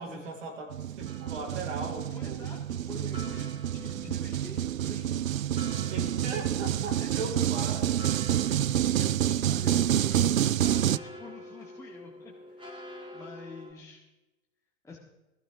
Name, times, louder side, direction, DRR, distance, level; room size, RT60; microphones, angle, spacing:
voice 1, 0.0-2.5 5.9-8.1 8.5-8.7, right 3 dB, 65° right, 1 dB, 5.0 m, -38 dB
sound 1, 0.7-11.0, right 11 dB, 80° right, 0.5 m, -28 dB
sound 2, 1.0-13.7, left 1 dB, 15° right, 4.2 m, -49 dB
voice 2, 2.1-5.7 7.0-7.5 8.9-14.0 14.8-15.0, left 3 dB, 5° left, -4 dB, 1.9 m, -47 dB
20.5 x 14.5 x 3.6 m, 1.0 s
hypercardioid pair, 105°, 39 cm